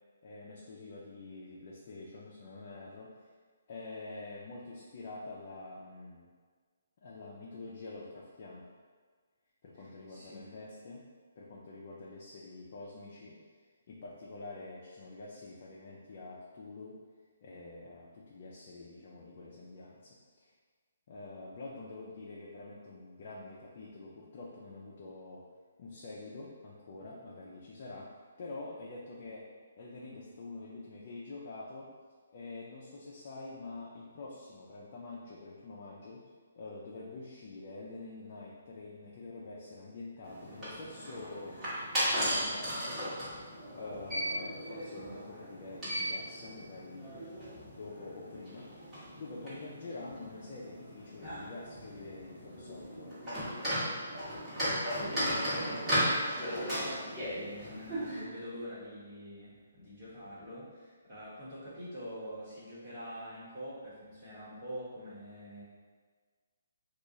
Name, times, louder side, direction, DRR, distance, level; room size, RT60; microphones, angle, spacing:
voice 1, 0.2-3.1 3.7-6.3 7.0-8.7 9.6-11.1 11.4-13.4 13.9-17.0 17.4-20.5 21.1-25.4 25.8-28.1 28.4-29.5 29.8-31.9 32.3-36.2 36.6-41.6 42.0-43.0 43.8-47.2 47.7-53.2, left 3 dB, 45° left, -4 dB, 0.4 m, -46 dB
voice 2, 9.7-10.5 54.9-65.6, equal, 35° right, -10 dB, 1.2 m, -45 dB
sound 1, 40.2-58.2, equal, 15° right, 1.2 m, -36 dB
2.8 x 2.4 x 3.7 m, 1.5 s
hypercardioid pair, 160°, 0 cm